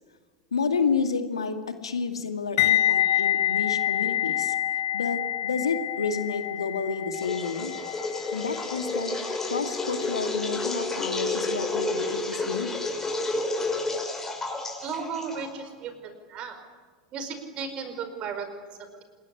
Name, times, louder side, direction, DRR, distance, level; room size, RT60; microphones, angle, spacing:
voice 1, 0.5-1.6 1.8-4.5 4.9-7.7 8.3-9.1 9.5-12.7, left 5 dB, 75° left, 8 dB, 2.1 m, -30 dB
sound 1, 2.6-11.5 11.8-12.1, left 13 dB, 60° left, 0.9 m, -28 dB
sound 2, 7.1-15.7, left 2 dB, 15° left, 6.2 m, -30 dB
voice 2, 14.8-16.6 17.1-19.0, right 5 dB, 40° right, 9 dB, 4.8 m, -35 dB
27.5 x 20.0 x 10.0 m, 1.5 s
figure-of-eight pair, 80°, 3 cm